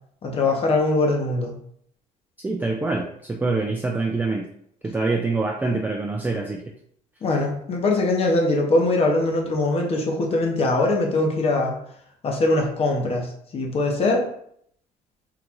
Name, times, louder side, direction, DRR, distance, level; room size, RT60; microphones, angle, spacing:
voice 1, 0.2-1.5 7.2-11.8 12.2-13.3 13.5-14.2, left 2 dB, 40° left, 1 dB, 1.0 m, -22 dB
voice 2, 2.4-4.4 4.8-6.6, right 3 dB, 10° right, 0 dB, 0.4 m, -25 dB
3.8 x 2.5 x 4.5 m, 0.68 s
cardioid pair, 125°, 15 cm